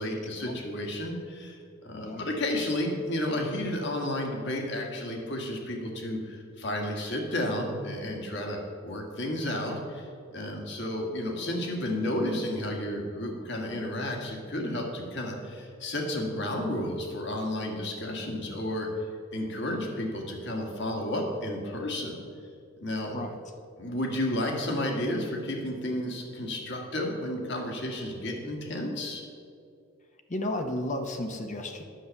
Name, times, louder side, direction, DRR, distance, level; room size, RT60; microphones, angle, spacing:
voice 1, 0.0-18.9 19.3-22.2 22.8-23.2 23.8-29.2, left 1 dB, 55° left, 1 dB, 1.9 m, -32 dB
voice 2, 30.3-31.9, left 1 dB, 35° left, 5 dB, 0.8 m, -33 dB
10.0 x 6.7 x 7.1 m, 2.4 s
head